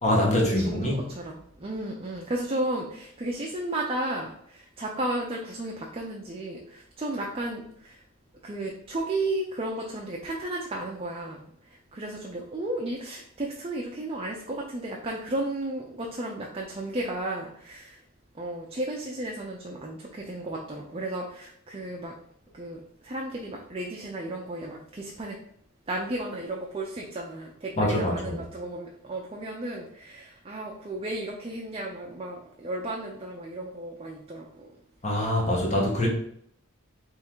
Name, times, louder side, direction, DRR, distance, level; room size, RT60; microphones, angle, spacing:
voice 1, 0.0-1.1 27.8-28.4 35.0-36.1, left 1 dB, 35° left, -2 dB, 1.2 m, -24 dB
voice 2, 0.6-8.0 8.4-11.5 11.9-18.0 18.3-22.2 22.5-25.4 25.9-34.7, right 1 dB, 30° right, -1 dB, 0.6 m, -34 dB
3.7 x 3.2 x 4.5 m, 0.67 s
head